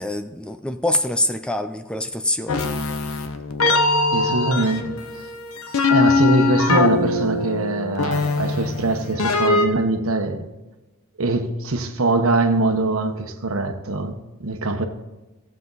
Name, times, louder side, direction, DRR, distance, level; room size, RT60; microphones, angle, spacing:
voice 1, 0.0-2.7, left 1 dB, 5° left, 0.4 m, -25 dB
sound 1, 2.5-9.7, left 3 dB, 75° left, 0.8 m, -21 dB
voice 2, 4.1-5.3 5.9-10.5 11.2-14.9, right 2 dB, 75° right, 1.1 m, -23 dB
16.5 x 7.4 x 4.0 m
head